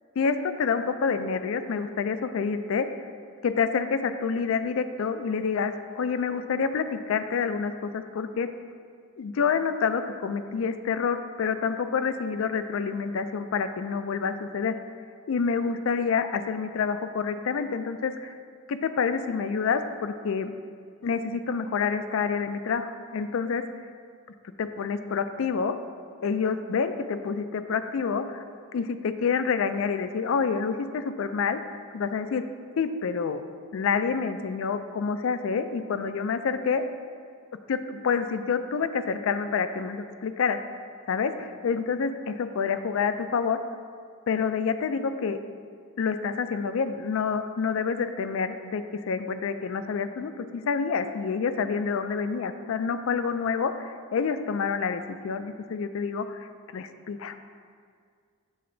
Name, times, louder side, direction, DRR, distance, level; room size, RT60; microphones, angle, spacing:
voice 1, 0.2-2.9 3.4-8.5 9.2-14.8 15.3-18.3 18.7-20.5 21.0-23.6 24.6-25.8 26.2-28.4 28.7-31.6 31.9-32.4 32.8-33.5 33.7-36.8 37.7-40.6 41.1-43.6 44.3-45.4 46.0-56.5 56.7-57.4, left 5 dB, 65° left, 10 dB, 0.3 m, -28 dB
8.6 x 3.3 x 3.8 m, 2.1 s
head